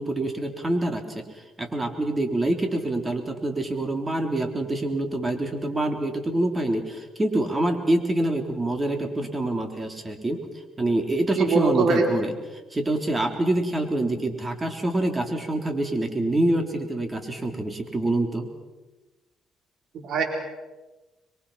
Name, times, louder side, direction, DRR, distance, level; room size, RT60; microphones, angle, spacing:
voice 1, 0.0-10.4 10.8-12.3 12.7-18.5, right 1 dB, 25° right, 5 dB, 3.8 m, -26 dB
voice 2, 11.4-12.1 19.9-20.2, right 4 dB, 70° right, 3 dB, 4.2 m, -22 dB
26.5 x 23.0 x 5.8 m, 1.1 s
cardioid pair, 90°, 0 cm